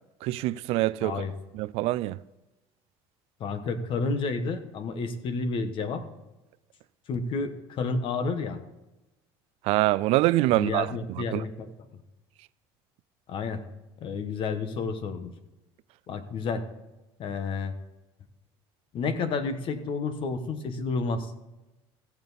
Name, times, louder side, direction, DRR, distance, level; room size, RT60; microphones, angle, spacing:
voice 1, 0.2-1.2 1.5-2.2 9.6-11.4, right 17 dB, 65° right, 0.4 m, -25 dB
voice 2, 1.0-1.3 3.4-6.0 7.1-8.6 10.5-11.7 13.3-13.6 14.0-15.3 16.1-16.6 17.2-17.7 18.9-21.3, left 4 dB, 50° left, 1.2 m, -30 dB
15.5 x 7.1 x 4.1 m
cardioid pair, 120°, 11 cm